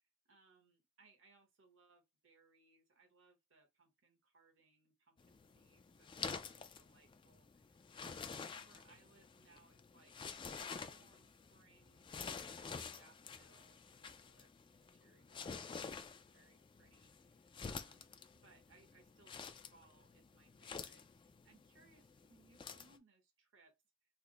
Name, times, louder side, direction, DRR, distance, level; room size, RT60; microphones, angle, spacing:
voice 1, 0.0-23.7, right 3 dB, 85° right, 1.2 m, -70 dB
sound 1, 5.2-23.0, left 5 dB, 25° left, 0.3 m, -50 dB
3.4 x 2.0 x 3.8 m
head